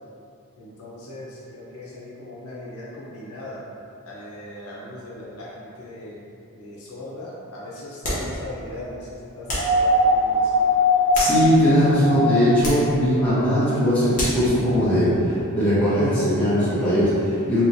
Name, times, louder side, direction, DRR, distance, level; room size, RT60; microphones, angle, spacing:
voice 1, 0.6-3.7 4.1-6.2 6.6-10.6, left 1 dB, 80° left, -6 dB, 0.7 m, -39 dB
sound 1, 8.0-8.4 9.5-9.8 10.9-11.8 12.6-12.9 14.1-14.5, left 1 dB, 35° left, 0.9 m, -29 dB
sound 2, 9.5-12.8 14.2-14.3, left 1 dB, 25° right, 0.6 m, -21 dB
voice 2, 11.1-17.6, equal, 5° left, -13 dB, 0.9 m, -20 dB
3.0 x 3.0 x 2.6 m, 2.6 s
head